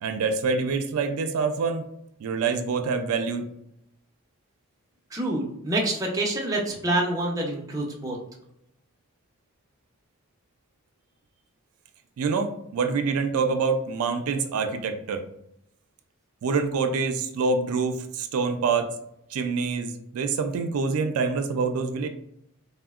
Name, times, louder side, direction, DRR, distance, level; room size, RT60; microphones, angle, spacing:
voice 1, 0.0-1.8 2.2-3.5 12.2-15.2 16.4-18.9 19.3-22.1, right 4 dB, 80° right, 6 dB, 0.3 m, -26 dB
voice 2, 5.1-8.2, right 1 dB, 15° right, -1 dB, 0.5 m, -27 dB
3.5 x 2.0 x 2.3 m, 0.77 s
head